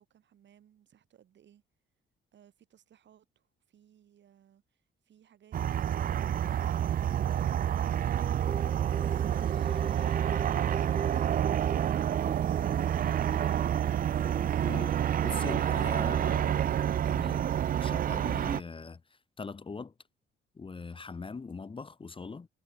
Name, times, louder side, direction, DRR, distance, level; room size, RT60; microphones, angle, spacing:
voice 1, 0.0-1.6 2.3-7.1, right 10 dB, 65° right, 7.4 m, -61 dB
sound 1, 5.5-18.6, right 10 dB, 45° right, 0.5 m, -28 dB
sound 2, 8.4-15.3, right 5 dB, 25° right, 0.9 m, -41 dB
voice 2, 15.2-19.9 20.5-22.5, left 4 dB, 25° left, 1.2 m, -42 dB
cardioid pair, 90°, 20 cm